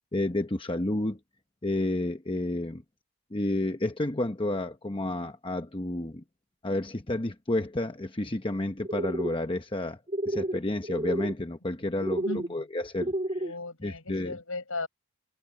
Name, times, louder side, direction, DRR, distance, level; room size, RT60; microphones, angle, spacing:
voice 1, 0.1-1.2 1.6-2.8 3.3-6.2 6.6-10.0 10.3-12.2 12.5-13.5 13.8-14.4, left 1 dB, 20° left, 0.9 m, -30 dB
sound 1, 8.8-9.3 10.1-10.6 10.8-11.3 12.0-12.5 13.0-13.5, right 1 dB, 30° right, 1.8 m, -30 dB
voice 2, 11.9-12.6 13.4-14.9, left 2 dB, 70° left, 5.7 m, -37 dB
head